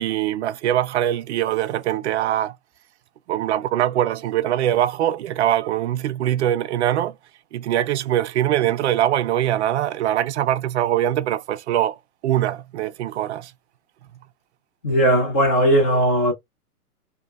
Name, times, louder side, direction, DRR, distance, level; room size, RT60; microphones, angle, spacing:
voice 1, 0.0-2.5 3.3-7.2 7.5-12.0 12.2-13.5, right 12 dB, 50° right, 0.5 m, -22 dB
voice 2, 14.8-16.3, right 1 dB, 10° left, 0.3 m, -18 dB
2.8 x 2.3 x 3.2 m
hypercardioid pair, 130°, 45 cm